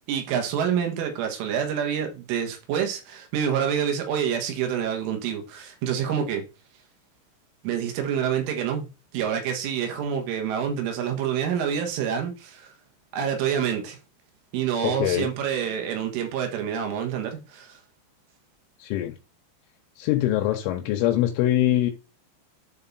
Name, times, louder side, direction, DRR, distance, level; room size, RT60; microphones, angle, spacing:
voice 1, 0.1-6.4 7.6-8.8 9.1-12.7 13.1-14.0 14.5-17.8, right 8 dB, 85° right, 4.0 m, -27 dB
voice 2, 14.8-15.3 18.8-19.1 20.0-21.9, left 13 dB, 85° left, 3.3 m, -23 dB
11.0 x 3.8 x 4.1 m
omnidirectional pair, 5.5 m